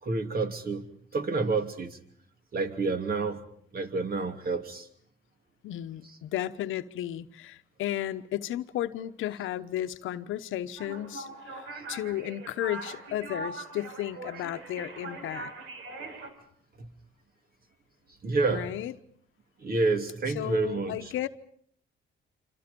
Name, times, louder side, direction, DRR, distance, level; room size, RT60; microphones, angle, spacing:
voice 1, 0.0-2.0 2.5-3.4 3.7-4.9 11.7-11.8 16.8-16.9 18.2-18.7 19.6-21.1, right 3 dB, 50° right, 3.0 m, -29 dB
voice 2, 5.6-15.5 18.5-18.9 20.4-21.3, left 13 dB, 85° left, 1.1 m, -34 dB
sound 1, 10.8-16.3, right 3 dB, 90° right, 3.9 m, -41 dB
27.0 x 26.0 x 5.3 m
cardioid pair, 90°, 20 cm